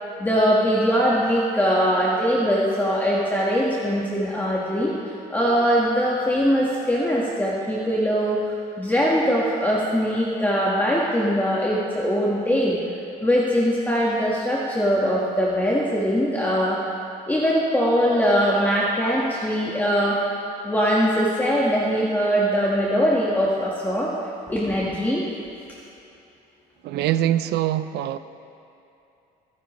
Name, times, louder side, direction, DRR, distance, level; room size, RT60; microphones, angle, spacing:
voice 1, 0.2-4.9 5.3-12.8 13.2-16.8 17.3-20.2 20.6-24.1 24.5-25.2, equal, 10° left, -5 dB, 1.5 m, -21 dB
voice 2, 26.8-28.2, right 12 dB, 75° right, 12 dB, 0.6 m, -23 dB
26.5 x 10.0 x 3.2 m, 2.8 s
cardioid pair, 110°, 17 cm